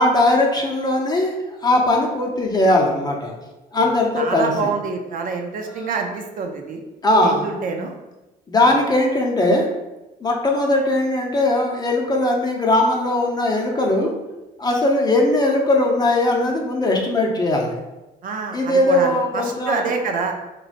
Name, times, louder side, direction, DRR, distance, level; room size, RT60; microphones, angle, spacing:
voice 1, 0.0-3.3 3.7-4.7 5.7-5.9 7.0-7.8 8.5-9.7 10.2-14.1 14.6-17.7 18.5-19.9, left 1 dB, 25° left, 0 dB, 0.7 m, -19 dB
voice 2, 4.2-6.8 7.2-8.0 8.6-8.7 18.2-20.3, right 5 dB, 55° right, 3 dB, 0.5 m, -26 dB
3.8 x 3.1 x 2.5 m, 1.0 s
cardioid pair, 110°, 17 cm